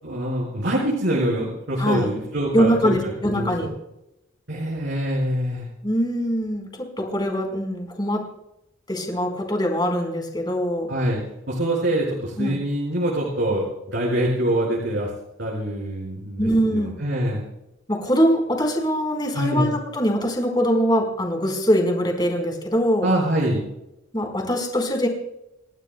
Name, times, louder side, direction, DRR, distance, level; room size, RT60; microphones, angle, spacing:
voice 1, 0.0-3.5 4.5-5.7 10.9-11.2 11.5-15.1 15.4-17.4 19.3-19.7 23.0-23.6, right 1 dB, 70° right, -5 dB, 5.4 m, -24 dB
voice 2, 1.8-2.1 2.5-3.7 5.8-8.2 8.9-10.9 12.4-12.6 16.4-16.9 17.9-23.1 24.1-25.1, equal, 20° left, 2 dB, 4.6 m, -22 dB
29.5 x 15.0 x 2.3 m, 0.86 s
head